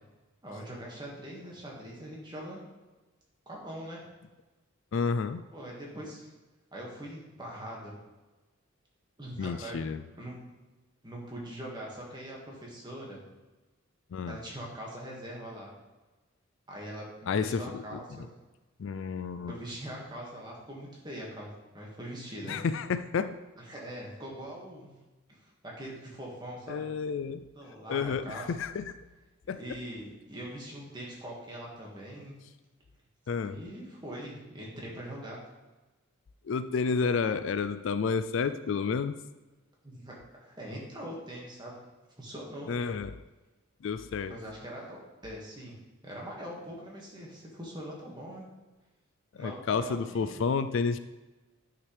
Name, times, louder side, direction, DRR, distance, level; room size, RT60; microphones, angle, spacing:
voice 1, 0.4-2.6 3.5-4.1 5.5-6.3 6.7-8.0 9.2-9.9 10.2-10.4 11.0-13.2 14.3-15.7 16.7-18.3 19.5-21.5 21.7-22.6 23.6-24.9 25.3-26.9 27.6-28.5 29.5-32.3 33.4-35.4 37.2-37.3 39.8-41.8 42.2-42.7 44.3-45.8 46.0-48.5 49.4-50.4, right 1 dB, 20° right, -3 dB, 1.9 m, -42 dB
voice 2, 4.9-5.4 9.4-10.0 14.1-14.4 17.3-17.8 18.1-18.3 18.8-19.5 22.5-23.4 26.7-27.5 27.9-29.0 29.5-29.6 33.3-33.6 36.4-39.2 42.7-43.2 43.8-44.4 49.3-51.0, left 5 dB, 60° left, 12 dB, 0.3 m, -30 dB
9.5 x 5.8 x 3.4 m, 1.2 s
head